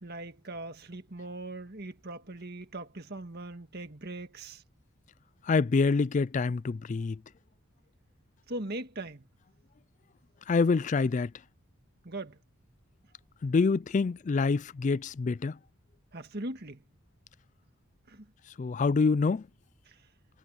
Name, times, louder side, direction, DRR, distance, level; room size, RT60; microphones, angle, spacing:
voice 1, 0.0-4.6 8.5-9.3 12.0-12.4 16.1-16.8 18.1-18.3 19.9-20.0, right 2 dB, 50° right, 1.8 m, -40 dB
voice 2, 5.5-7.2 10.5-11.3 13.4-15.5 18.6-19.4, left 4 dB, 35° left, 0.3 m, -26 dB
head